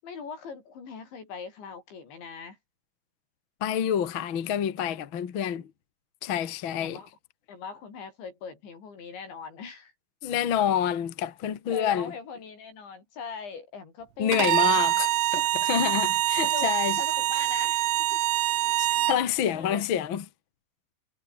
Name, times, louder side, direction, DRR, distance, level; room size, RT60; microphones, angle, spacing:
voice 1, 0.0-2.6 6.8-7.1 7.5-9.9 11.7-15.1 16.4-18.2 19.4-19.8, left 5 dB, 80° left, 8.6 m, -41 dB
voice 2, 3.6-5.7 6.2-7.0 10.2-12.1 14.2-17.0 18.8-20.2, left 9 dB, 50° left, 1.4 m, -28 dB
Bowed string instrument, 14.3-19.2, right 15 dB, 80° right, 3.5 m, -25 dB
omnidirectional pair, 5.2 m